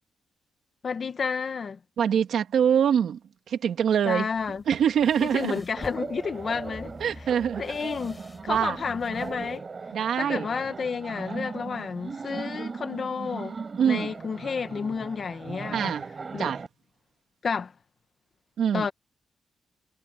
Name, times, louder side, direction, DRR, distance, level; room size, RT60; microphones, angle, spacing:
voice 1, 0.8-1.8 4.0-4.6 5.3-6.9 7.6-9.7 10.2-13.6 13.8-15.9 16.3-16.5 17.4-17.7 18.7-18.9, left 5 dB, 40° left, 1.3 m, -31 dB
voice 2, 2.0-3.2 3.5-4.3 4.7-5.6 7.0-7.6 8.5-8.8 9.9-10.5 13.8-14.1 15.7-16.1 16.4-16.6 18.6-18.9, right 8 dB, 70° right, 2.6 m, -24 dB
sound 1, 4.3-9.6, left 2 dB, 15° left, 7.7 m, -48 dB
Laughter, 5.8-16.7, right 4 dB, 30° right, 5.0 m, -38 dB
wide cardioid pair, 170°, 0 cm